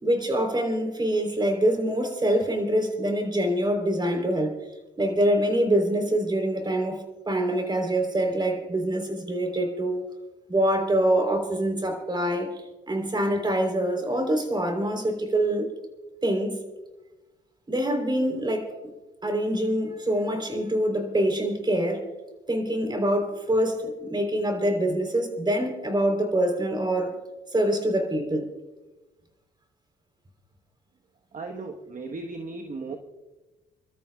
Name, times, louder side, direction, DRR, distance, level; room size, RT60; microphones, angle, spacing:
voice 1, 0.0-4.7 5.0-10.0 10.5-15.7 16.2-16.6 17.7-18.7 19.2-22.0 22.5-27.2 27.5-28.5, right 1 dB, 20° right, 3.6 m, -25 dB
voice 2, 31.3-33.0, right 3 dB, 40° right, 1.3 m, -36 dB
30.0 x 13.0 x 2.4 m
cardioid pair, 90°, 20 cm